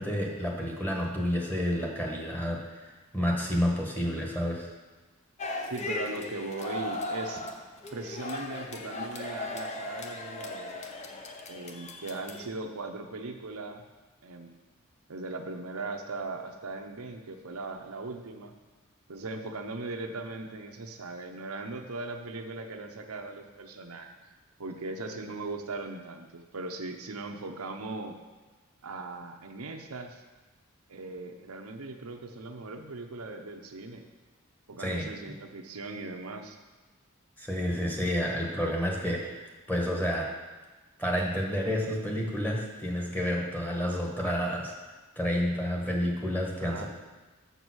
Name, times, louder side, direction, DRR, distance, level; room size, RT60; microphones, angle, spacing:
voice 1, 0.0-4.7 34.8-35.0 37.4-40.4 41.0-44.7 45.2-46.9, equal, 10° left, -1 dB, 1.4 m, -30 dB
sound 1, 5.4-12.5, left 2 dB, 30° left, 0.7 m, -37 dB
voice 2, 5.6-7.4 7.9-10.8 11.5-13.9 14.2-14.6 15.1-18.5 19.1-24.1 24.6-28.2 28.8-30.2 30.9-34.0 34.7-36.6 46.6-46.9, right 3 dB, 90° right, 4 dB, 0.8 m, -39 dB
6.9 x 6.6 x 6.2 m, 1.2 s
head